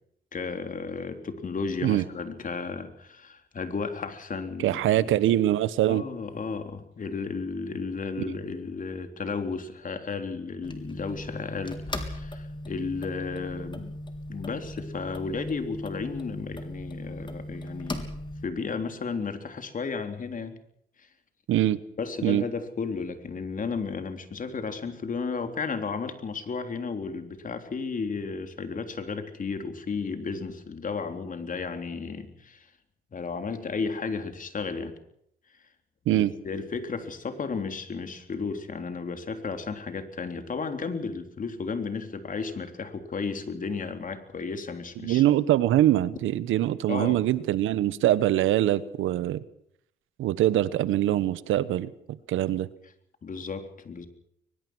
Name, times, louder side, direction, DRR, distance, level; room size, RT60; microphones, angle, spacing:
voice 1, 0.3-5.1 5.9-14.0 14.3-18.1 18.4-20.6 21.0-21.1 22.0-32.7 33.1-34.9 36.1-45.2 46.9-47.2 53.2-54.1, left 4 dB, 40° left, 7 dB, 3.5 m, -33 dB
voice 2, 4.6-6.0 21.5-21.8 22.2-22.4 36.1-36.3 45.0-49.4 50.2-51.9 52.3-52.7, right 13 dB, 85° right, 16 dB, 1.2 m, -23 dB
sound 1, 10.6-18.5, left 1 dB, 25° left, 3.7 m, -38 dB
22.5 x 21.0 x 6.3 m, 0.71 s
cardioid pair, 90°, 20 cm